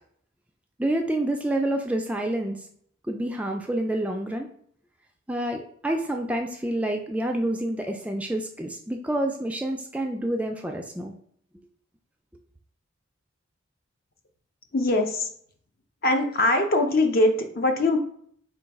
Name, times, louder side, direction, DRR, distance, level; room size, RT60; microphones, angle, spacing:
voice 1, 0.8-2.6 3.1-4.5 5.3-11.1, right 1 dB, 5° right, 3 dB, 0.3 m, -28 dB
voice 2, 14.7-15.3 16.0-18.0, left 2 dB, 50° left, 5 dB, 0.6 m, -22 dB
3.9 x 2.3 x 4.6 m, 0.64 s
head